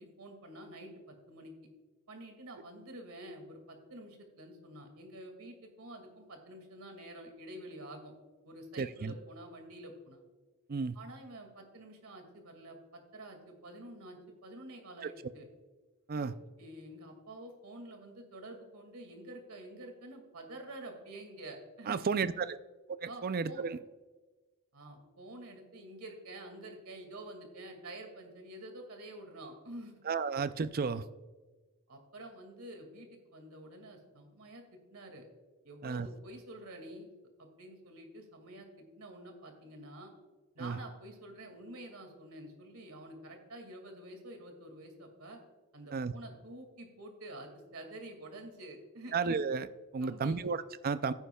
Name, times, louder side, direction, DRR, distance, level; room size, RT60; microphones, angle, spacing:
voice 1, 0.0-1.5 2.1-8.1 8.4-10.2 10.9-15.5 16.1-16.3 16.6-22.0 23.1-23.6 24.7-30.0 31.9-35.3 35.6-37.1 37.4-40.1 40.5-45.4 45.7-49.2 50.0-50.4, right 1 dB, 75° right, 4 dB, 2.2 m, -48 dB
voice 2, 8.8-9.1 10.7-11.0 16.1-16.3 21.9-22.6 23.0-23.8 30.1-31.0 35.8-36.1 40.6-40.8 45.9-46.1 49.1-51.1, right 5 dB, 45° right, 13 dB, 0.4 m, -33 dB
14.0 x 10.0 x 2.3 m, 1.2 s
head